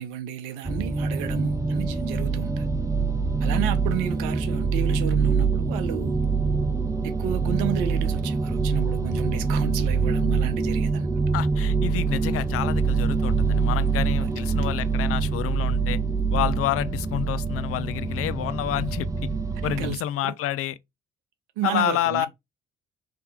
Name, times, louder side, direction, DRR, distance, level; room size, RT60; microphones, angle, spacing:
voice 1, 0.0-2.7 3.4-6.2 7.0-11.1 14.2-14.3 14.7-14.8 19.6-20.3 21.6-22.3, right 11 dB, 75° right, 0.7 m, -32 dB
sound 1, 0.6-20.0, right 4 dB, 10° right, 0.5 m, -25 dB
voice 2, 11.3-16.0 16.3-19.3 19.6-20.7 21.6-22.3, left 12 dB, 50° left, 0.4 m, -28 dB
3.3 x 2.8 x 3.5 m
hypercardioid pair, 50°, 31 cm